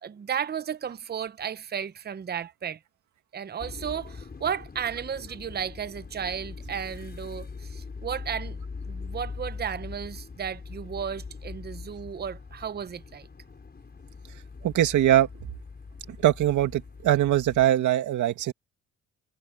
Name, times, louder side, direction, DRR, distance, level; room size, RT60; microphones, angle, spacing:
voice 1, 0.0-2.8 3.3-8.6 8.9-13.3, right 8 dB, 35° right, 0.8 m, -34 dB
sound 1, 3.6-17.7, left 4 dB, 30° left, 6.7 m, -41 dB
voice 2, 14.6-15.3 16.1-18.5, right 12 dB, 80° right, 2.1 m, -22 dB
cardioid pair, 90°, 30 cm